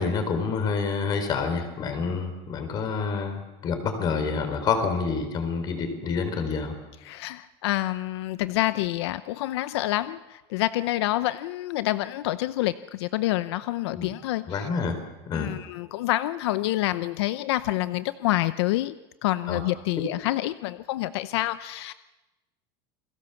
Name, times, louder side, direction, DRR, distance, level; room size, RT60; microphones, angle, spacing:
voice 1, 0.0-6.7 13.9-14.1 14.5-15.0 15.3-15.5 19.5-19.6, left 5 dB, 30° left, 8 dB, 4.2 m, -28 dB
voice 2, 7.0-14.7 15.3-18.9 19.2-21.9, left 16 dB, 85° left, 13 dB, 0.8 m, -27 dB
29.0 x 21.5 x 7.1 m, 1.0 s
supercardioid pair, 165°, 13 cm